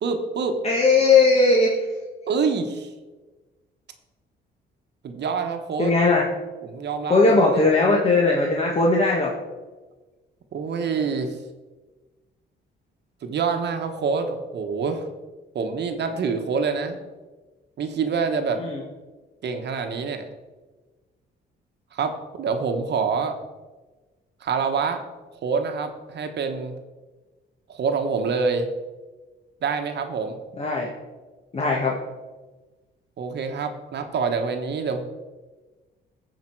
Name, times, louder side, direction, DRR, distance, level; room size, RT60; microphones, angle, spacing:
voice 1, 0.0-0.6 2.3-2.9 5.0-5.9 6.6-7.6 10.5-11.4 13.2-15.1 15.5-17.0 17.8-18.6 19.4-20.2 21.9-23.3 24.4-25.0 25.4-26.8 27.7-28.7 29.6-30.4 33.2-35.0, right 5 dB, 60° right, 6 dB, 1.1 m, -26 dB
voice 2, 0.6-1.8 5.8-6.3 7.1-9.3 18.6-18.8 30.6-30.9 31.5-32.0, left 3 dB, 30° left, -2 dB, 1.4 m, -18 dB
14.0 x 5.1 x 4.6 m, 1.2 s
cardioid pair, 90°, 20 cm